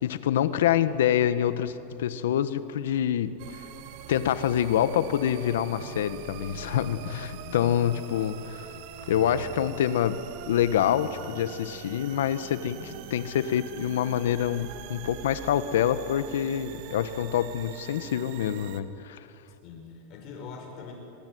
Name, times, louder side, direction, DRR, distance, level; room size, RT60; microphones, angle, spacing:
voice 1, 0.0-3.4 4.1-8.7 9.1-19.2, left 10 dB, 85° left, 13 dB, 1.4 m, -26 dB
sound 1, 3.4-18.8, right 10 dB, 50° right, 1.7 m, -43 dB
voice 2, 6.6-6.9 7.4-7.7 12.7-12.9 19.6-20.9, left 6 dB, 40° left, 1 dB, 5.8 m, -43 dB
24.5 x 21.0 x 9.5 m, 2.8 s
supercardioid pair, 160°, 0 cm